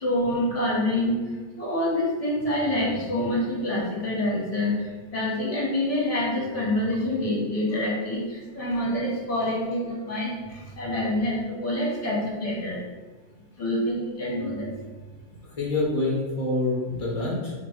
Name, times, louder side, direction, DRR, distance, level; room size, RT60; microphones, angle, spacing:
voice 1, 0.0-1.2 1.6-12.8 13.6-14.7, left 1 dB, 30° left, -5 dB, 0.7 m, -26 dB
voice 2, 15.4-17.5, left 2 dB, 65° left, -5 dB, 0.3 m, -26 dB
3.0 x 2.5 x 4.4 m, 1.3 s
omnidirectional pair, 1.8 m